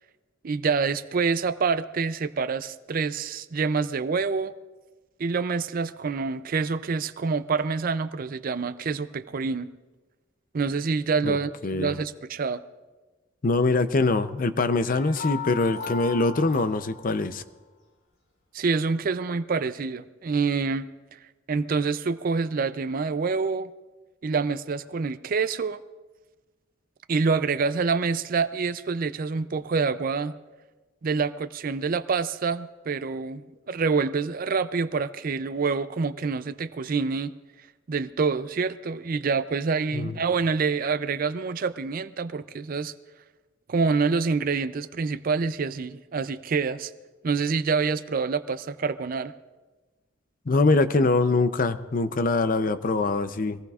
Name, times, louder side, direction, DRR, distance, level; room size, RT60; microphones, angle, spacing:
voice 1, 0.4-4.5 5.2-9.7 10.5-12.6 18.5-20.9 21.5-23.7 24.2-25.8 27.1-30.3 31.0-37.3 37.9-42.9 43.7-46.9 47.2-49.3, right 4 dB, 45° right, 12 dB, 0.4 m, -26 dB
voice 2, 11.6-12.0 13.4-17.4 39.9-40.1 50.5-53.6, left 3 dB, 45° left, 11 dB, 0.6 m, -23 dB
sound 1, 14.9-17.3, left 6 dB, 90° left, 3.4 m, -36 dB
23.5 x 18.0 x 2.4 m, 1.2 s
head